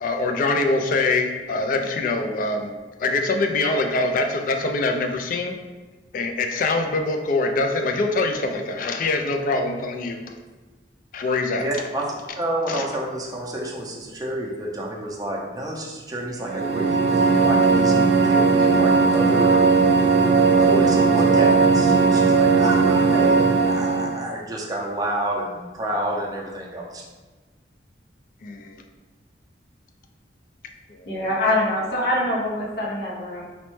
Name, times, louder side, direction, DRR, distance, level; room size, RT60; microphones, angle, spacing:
voice 1, 0.0-2.7 3.0-5.5 6.1-10.2 11.1-11.7 12.7-12.9 28.4-28.8, left 3 dB, 50° left, 5 dB, 0.3 m, -24 dB
voice 2, 11.6-12.1 12.4-17.9 18.2-19.6 20.5-27.0, right 1 dB, 20° right, -2 dB, 0.5 m, -29 dB
sound 1, 16.4-24.2, right 4 dB, 85° right, 0.3 m, -17 dB
voice 3, 31.1-33.4, left 1 dB, 65° left, -5 dB, 0.7 m, -24 dB
4.0 x 2.1 x 3.1 m, 1.3 s
head